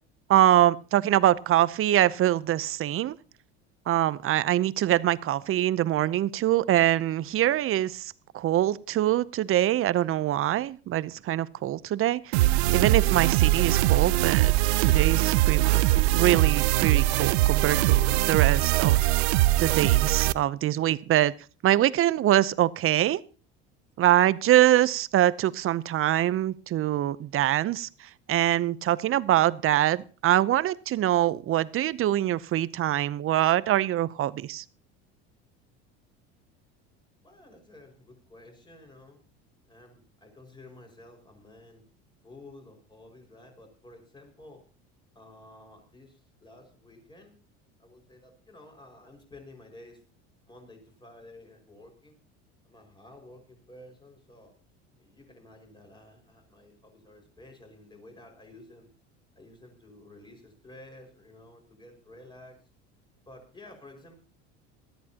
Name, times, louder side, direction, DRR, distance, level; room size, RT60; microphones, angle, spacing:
voice 1, 0.3-3.2 3.9-12.4 12.7-14.5 14.8-15.8 16.1-19.1 19.6-21.3 21.6-23.2 24.0-34.6, right 13 dB, 45° right, 18 dB, 0.7 m, -24 dB
sound 1, 12.3-20.3, right 17 dB, 90° right, 0.5 m, -22 dB
voice 2, 37.2-39.2 39.7-41.8 42.2-44.6 45.2-47.4 47.8-50.0 50.4-52.2 52.6-54.5 55.0-58.9 59.4-62.6 63.3-64.2, left 2 dB, 15° left, 3 dB, 5.4 m, -51 dB
19.0 x 13.5 x 2.9 m, 0.37 s
supercardioid pair, 95°, 31 cm